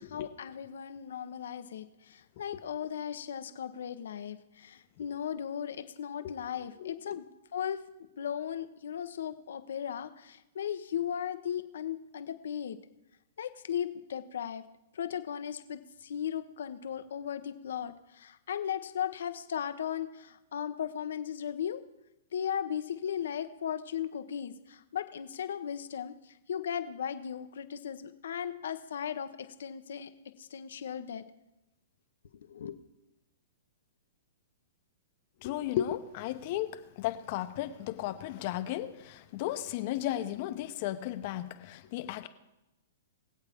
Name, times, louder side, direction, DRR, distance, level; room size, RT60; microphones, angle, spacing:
voice 1, 0.0-7.2 7.5-7.8 8.2-12.8 13.4-14.6 14.9-21.8 22.3-26.1 26.5-30.1 30.4-31.2 32.5-32.8, left 9 dB, 75° left, 10 dB, 1.0 m, -37 dB
voice 2, 6.8-7.2 35.4-42.3, left 13 dB, 50° left, 10 dB, 1.0 m, -35 dB
23.0 x 8.0 x 3.6 m, 0.97 s
hypercardioid pair, 125°, 0 cm